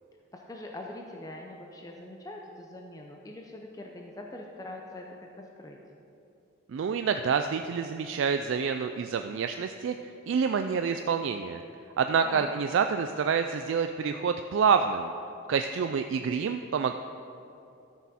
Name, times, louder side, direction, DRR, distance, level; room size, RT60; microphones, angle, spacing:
voice 1, 0.3-5.8 12.2-12.5, left 1 dB, 15° left, 1 dB, 0.5 m, -43 dB
voice 2, 6.7-9.9 10.3-11.6 12.0-15.1 15.5-16.9, right 6 dB, 65° right, 7 dB, 0.3 m, -27 dB
13.0 x 6.1 x 4.2 m, 2.7 s
head